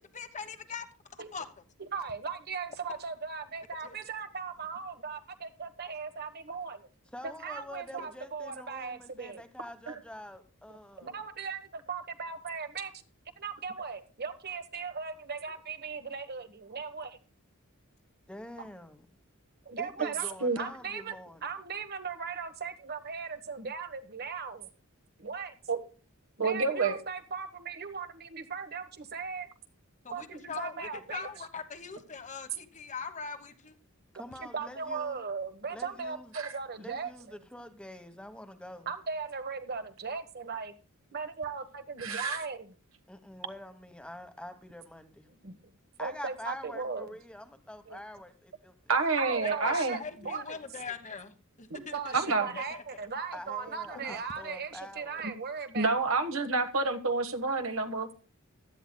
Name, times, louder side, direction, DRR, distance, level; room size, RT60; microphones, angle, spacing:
voice 1, 0.1-0.9 1.1-1.5 3.8-4.0 30.0-33.8 49.4-52.8 53.9-54.2, left 5 dB, 35° left, 1.2 m, -41 dB
voice 2, 1.8-6.9 7.2-9.4 11.0-12.9 13.4-17.2 19.6-20.3 20.6-21.2 21.4-24.7 25.2-25.5 26.4-29.5 30.1-31.3 34.4-37.4 38.9-40.7 41.1-42.7 45.4-45.7 46.0-47.1 49.2-50.6 51.9-55.9, right 5 dB, 50° right, 1.2 m, -38 dB
voice 3, 7.1-11.3 18.3-19.1 19.8-21.4 34.1-35.2 35.7-36.3 36.7-38.9 43.1-45.3 46.0-48.7 49.1-49.2 49.6-49.7 53.3-55.2, left 1 dB, 5° left, 1.1 m, -46 dB
voice 4, 26.4-27.0 36.3-36.5 42.0-42.4 47.9-48.0 48.9-50.0 51.7-51.8 52.1-52.5 55.2-55.3 55.7-58.1, right 3 dB, 65° right, 1.4 m, -28 dB
16.0 x 12.0 x 2.2 m
head